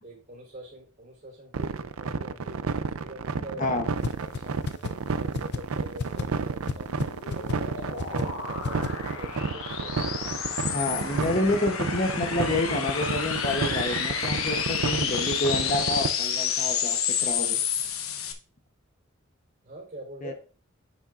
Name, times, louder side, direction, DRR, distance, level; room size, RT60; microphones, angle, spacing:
voice 1, 0.0-2.7 2.9-3.8 4.2-4.6 5.1-10.3 19.6-20.3, right 1 dB, 40° right, 0 dB, 3.7 m, -44 dB
sound 1, 1.5-16.1, right 5 dB, 80° right, 0.5 m, -31 dB
sound 2, 4.0-4.1 4.3-4.4 4.7-4.9 5.3-5.6 6.0-6.2 6.7-6.8 7.0-7.1 7.3-7.6 8.0-8.2 8.6-8.9, left 4 dB, 55° left, 0.6 m, -29 dB
sound 3, 6.8-18.3, left 7 dB, 80° left, 1.0 m, -30 dB
voice 2, 10.7-17.6 20.2-20.3, left 2 dB, 40° left, 5 dB, 1.0 m, -28 dB
9.3 x 7.0 x 2.5 m, 0.37 s
head